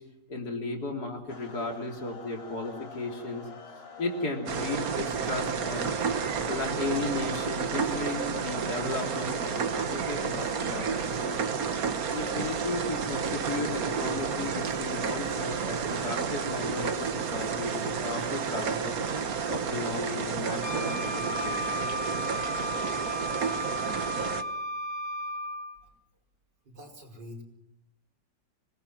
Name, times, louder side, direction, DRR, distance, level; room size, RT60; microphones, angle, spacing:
voice 1, 0.3-3.7 4.0-5.9 6.5-11.4 12.1-19.0 19.5-21.6 23.9-24.0, left 3 dB, 60° left, 2 dB, 4.0 m, -35 dB
sound 1, 1.3-16.0, left 4 dB, 85° left, 3.6 m, -50 dB
sound 2, 4.5-24.4, right 6 dB, 55° right, 1.7 m, -31 dB
Wind instrument woodwind instrument, 20.6-25.8, equal, 20° left, 4.5 m, -34 dB
voice 2, 26.7-27.4, left 1 dB, 75° right, 1 dB, 5.7 m, -45 dB
26.0 x 19.5 x 6.2 m, 0.86 s
omnidirectional pair, 1.9 m